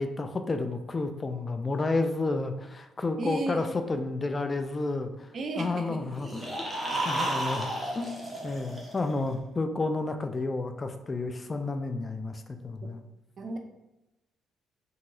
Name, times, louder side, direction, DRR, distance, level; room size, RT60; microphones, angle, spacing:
voice 1, 0.0-5.3 5.6-6.7 7.0-7.7 8.0-8.1 8.4-13.0, left 3 dB, 30° left, 7 dB, 0.3 m, -31 dB
voice 2, 3.2-3.6 5.3-6.0 7.2-7.3 12.8-12.9 13.4-13.6, right 2 dB, 55° right, 5 dB, 0.5 m, -34 dB
sound 1, 6.1-9.3, right 1 dB, 10° right, 0.9 m, -33 dB
2.8 x 2.6 x 2.6 m, 0.98 s
supercardioid pair, 60°, 0 cm